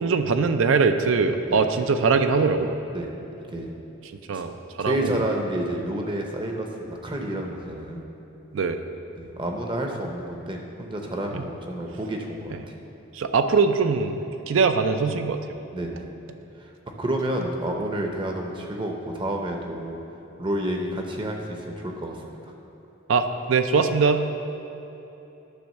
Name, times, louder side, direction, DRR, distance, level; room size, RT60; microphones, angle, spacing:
voice 1, 0.0-2.8 4.3-5.2 8.5-8.8 11.3-11.5 12.5-12.6 13.1-14.2 14.5-15.4 23.1-24.2, right 4 dB, 70° right, 8 dB, 0.4 m, -22 dB
voice 2, 4.8-8.0 9.2-12.7 15.7-16.1 17.0-20.0 20.4-22.2 22.4-22.5, right 1 dB, 25° right, 2 dB, 0.6 m, -30 dB
10.0 x 3.5 x 6.6 m, 3.0 s
head